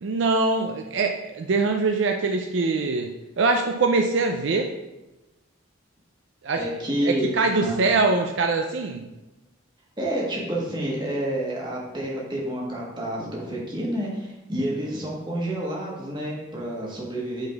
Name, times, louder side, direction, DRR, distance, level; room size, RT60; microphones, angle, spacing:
voice 1, 0.0-4.7 6.4-6.7 7.0-9.1, right 3 dB, 65° right, 4 dB, 0.5 m, -23 dB
voice 2, 6.6-7.3 7.6-7.8 10.0-17.5, right 1 dB, 25° right, -4 dB, 1.5 m, -29 dB
7.9 x 4.1 x 3.5 m, 1.0 s
head